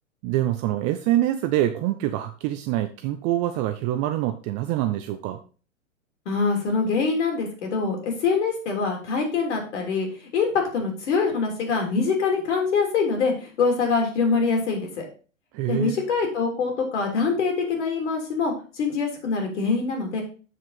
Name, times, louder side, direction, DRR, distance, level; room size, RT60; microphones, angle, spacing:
voice 1, 0.2-5.4 15.5-16.0, right 13 dB, 20° right, 9 dB, 0.3 m, -25 dB
voice 2, 6.2-15.1 15.7-20.2, left 4 dB, 65° left, 2 dB, 3.3 m, -24 dB
7.6 x 6.3 x 4.1 m, 0.36 s
figure-of-eight pair, 100°, 39 cm